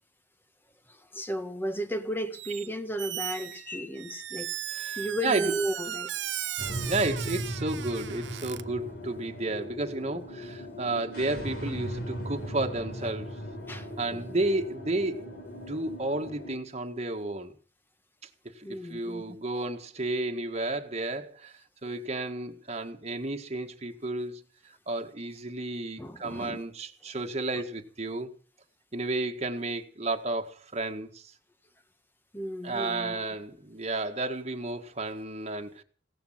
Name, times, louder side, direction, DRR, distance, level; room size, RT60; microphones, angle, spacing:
voice 1, 0.9-4.6 5.0-6.1 13.7-14.4 18.6-19.2 26.0-26.6 32.3-33.3, right 1 dB, 10° left, 1.6 m, -34 dB
Squeak, 2.3-2.7 3.0-8.6, right 11 dB, 85° right, 0.8 m, -36 dB
voice 2, 4.7-5.5 6.8-13.4 13.7-17.5 18.4-28.3 28.9-31.3 32.6-35.8, right 2 dB, 40° right, 1.8 m, -32 dB
sound 1, 6.6-16.6, equal, 60° left, 4.5 m, -38 dB
17.0 x 14.0 x 5.8 m
head